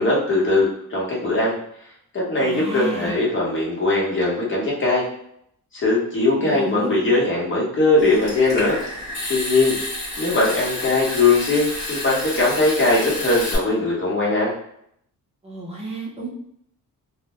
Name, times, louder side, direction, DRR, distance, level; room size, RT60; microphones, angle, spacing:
voice 1, 0.0-1.5 2.1-5.0 5.7-8.8 9.3-9.7 10.2-14.5, left 2 dB, 35° left, -5 dB, 0.9 m, -20 dB
voice 2, 2.4-3.1 6.4-7.1 15.4-16.3, right 1 dB, 20° right, -4 dB, 0.4 m, -30 dB
Water tap faucet / Sink (filling or washing) / Trickle dribble, 8.0-13.6, left 1 dB, 60° left, 1.0 m, -30 dB
2.1 x 2.0 x 2.8 m, 0.70 s
wide cardioid pair, 170°, 33 cm